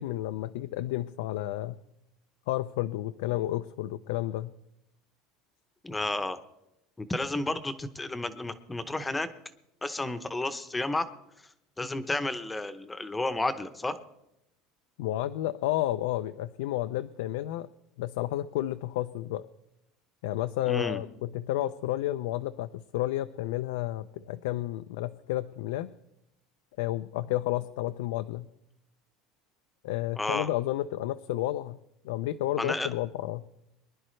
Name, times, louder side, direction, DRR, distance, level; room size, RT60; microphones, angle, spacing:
voice 1, 0.0-1.8 2.5-4.5 15.0-17.7 18.0-19.4 20.2-25.9 26.8-28.5 29.8-31.8 32.0-33.5, left 14 dB, 85° left, 10 dB, 0.5 m, -31 dB
voice 2, 5.8-6.4 7.0-9.3 9.8-11.1 11.8-14.0 20.7-21.0 30.2-30.5 32.6-32.9, left 2 dB, 10° left, 11 dB, 0.8 m, -31 dB
24.0 x 11.0 x 3.2 m, 0.83 s
cardioid pair, 165°, 0 cm